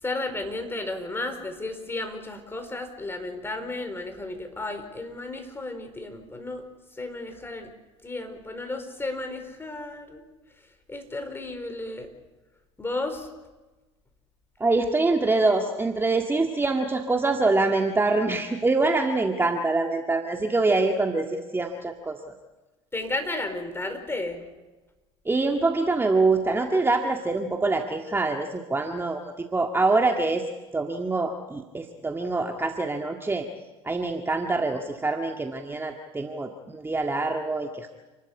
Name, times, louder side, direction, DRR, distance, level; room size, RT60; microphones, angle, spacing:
voice 1, 0.0-6.6 6.9-7.7 8.0-10.2 10.9-12.1 12.8-13.3 22.9-24.4, left 2 dB, 15° left, 7 dB, 4.6 m, -33 dB
voice 2, 14.6-22.2 25.3-30.5 30.7-33.5 33.8-37.9, right 3 dB, 15° right, 3 dB, 1.9 m, -25 dB
28.5 x 12.5 x 9.8 m, 1.1 s
hypercardioid pair, 75°, 15 cm